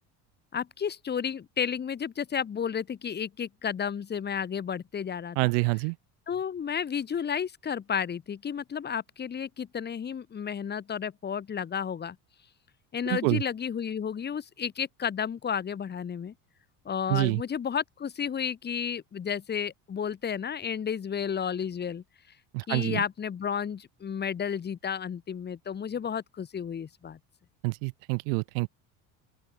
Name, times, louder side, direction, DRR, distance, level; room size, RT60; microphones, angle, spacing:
voice 1, 0.5-5.5 6.3-12.2 12.9-16.3 16.9-22.0 22.7-27.2, left 7 dB, 30° left, 2.2 m, -32 dB
voice 2, 5.4-6.0 13.1-13.4 17.1-17.4 22.5-23.0 27.6-28.7, right 35 dB, 85° right, 2.7 m, -27 dB
open air
supercardioid pair, 120°, 36 cm